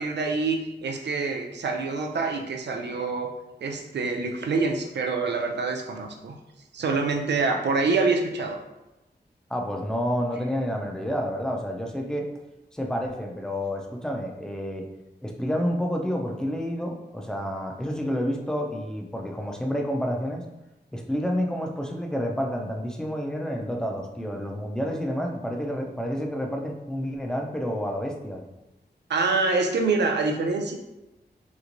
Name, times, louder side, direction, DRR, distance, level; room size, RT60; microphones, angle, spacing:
voice 1, 0.0-3.3 3.6-6.4 6.7-8.6 29.1-30.7, right 4 dB, 80° right, 3 dB, 0.4 m, -26 dB
voice 2, 9.5-12.3 12.7-14.9 15.2-20.4 20.9-28.4, equal, 5° left, 1 dB, 0.4 m, -29 dB
3.3 x 3.0 x 2.5 m, 0.99 s
wide cardioid pair, 130°, 18 cm